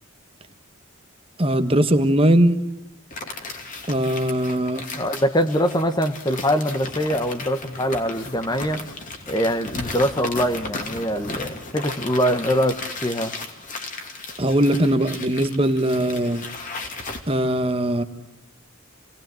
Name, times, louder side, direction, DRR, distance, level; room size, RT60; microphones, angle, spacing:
voice 1, 1.4-2.6 3.9-4.8 14.4-16.4 17.3-18.0, right 1 dB, 25° right, 9 dB, 1.3 m, -20 dB
sound 1, 3.1-17.2, left 3 dB, 35° left, 2.8 m, -35 dB
voice 2, 4.9-8.8 9.3-13.3, equal, 20° left, 8 dB, 1.2 m, -23 dB
28.0 x 19.0 x 7.8 m, 0.95 s
head